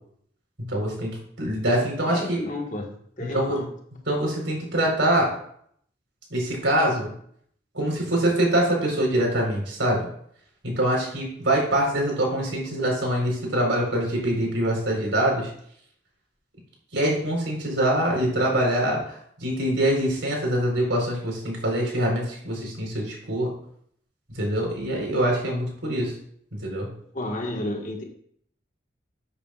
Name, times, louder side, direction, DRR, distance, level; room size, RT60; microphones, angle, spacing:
voice 1, 0.6-2.4 3.3-3.6 4.1-5.3 6.3-7.1 7.7-10.1 10.6-15.5 16.9-19.2 19.4-23.5 24.3-26.1 26.6-26.9, right 1 dB, 85° right, -1 dB, 4.4 m, -24 dB
voice 2, 2.1-3.7 27.1-28.0, left 1 dB, 40° left, 0 dB, 1.6 m, -31 dB
13.0 x 8.3 x 2.5 m, 0.65 s
head